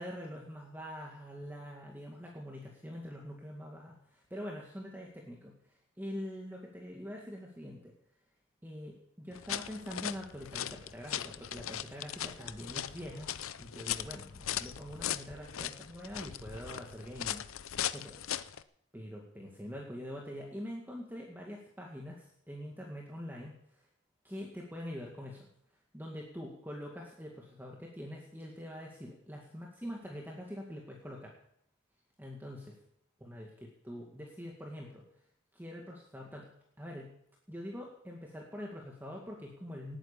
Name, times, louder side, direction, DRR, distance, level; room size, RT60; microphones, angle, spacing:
voice 1, 0.0-7.9 8.6-13.3 13.6-18.2 18.9-23.9 24.2-25.5 25.9-31.3 32.2-32.8 33.2-33.5 33.8-35.0 35.5-36.5 36.8-37.1 37.5-40.0, equal, 10° right, -1 dB, 2.1 m, -44 dB
sound 1, 9.3-18.6, left 10 dB, 85° left, 0.7 m, -39 dB
19.0 x 9.2 x 7.0 m, 0.71 s
head